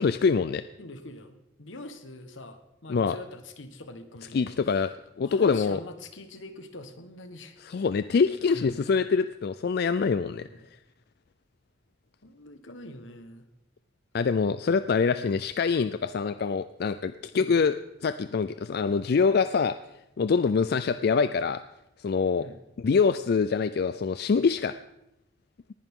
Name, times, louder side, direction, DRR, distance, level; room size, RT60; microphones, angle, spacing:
voice 1, 0.0-0.6 2.9-3.2 4.3-4.9 5.2-5.8 7.6-10.5 14.1-17.8 18.0-19.8 20.2-21.6 22.0-22.5 22.8-24.7, left 5 dB, 55° left, 12 dB, 0.4 m, -25 dB
voice 2, 0.8-4.9 5.2-7.6 8.5-8.8 10.4-10.6 12.2-13.5 15.1-15.4 17.3-17.6 22.4-22.6, left 2 dB, 85° left, 9 dB, 1.3 m, -44 dB
19.0 x 10.5 x 3.7 m, 0.86 s
head